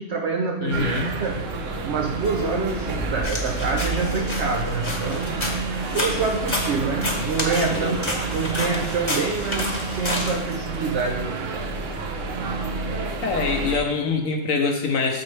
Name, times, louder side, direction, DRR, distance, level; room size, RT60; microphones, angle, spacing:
voice 1, 0.0-0.9 1.2-1.5 1.8-5.5 5.9-8.0 8.3-11.3, right 4 dB, 80° right, 3 dB, 0.6 m, -26 dB
voice 2, 0.6-1.1 7.7-8.1 13.2-15.2, left 4 dB, 60° left, 4 dB, 1.0 m, -24 dB
sound 1, 0.7-13.8, right 3 dB, 55° right, 1.0 m, -29 dB
Keyboard (musical), 2.2-5.5, left 4 dB, 85° left, 1.9 m, -44 dB
sound 2, 3.2-10.9, left 1 dB, 20° left, 0.9 m, -30 dB
8.4 x 6.3 x 3.3 m, 0.98 s
omnidirectional pair, 1.9 m